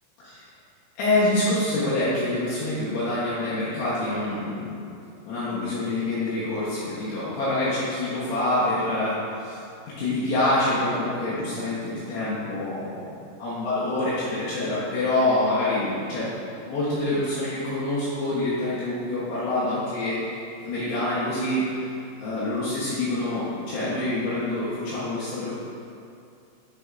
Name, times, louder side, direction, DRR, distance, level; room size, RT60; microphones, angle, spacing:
voice 1, 1.0-4.8 5.2-9.6 10.0-16.3 16.7-20.2 20.6-21.9 22.2-25.5, left 2 dB, 75° left, -10 dB, 2.6 m, -26 dB
9.6 x 4.2 x 2.5 m, 2.5 s
omnidirectional pair, 5.9 m